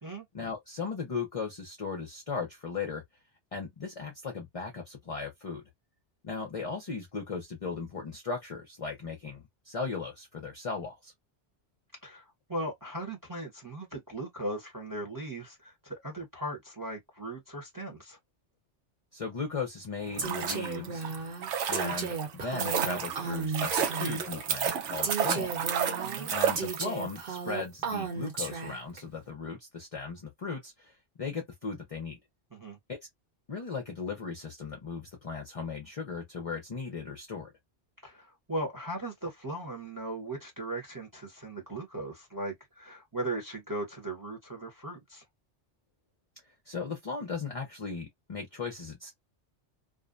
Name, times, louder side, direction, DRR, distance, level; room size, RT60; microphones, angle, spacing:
voice 1, 0.3-3.0 3.5-5.6 6.2-11.1 19.1-21.0 21.7-25.6 26.3-32.2 32.9-33.0 33.5-37.5 46.7-49.1, left 4 dB, 40° left, 0.5 m, -37 dB
voice 2, 12.0-18.2 26.0-26.3 32.5-32.8 38.0-45.2, right 1 dB, 20° right, 0.8 m, -38 dB
sound 1, 20.0-27.2 27.5-27.6, right 7 dB, 85° right, 0.9 m, -32 dB
Female speech woman speaking, 20.2-24.4 25.0-29.0, right 4 dB, 55° right, 1.0 m, -34 dB
2.5 x 2.1 x 2.4 m
omnidirectional pair, 1.2 m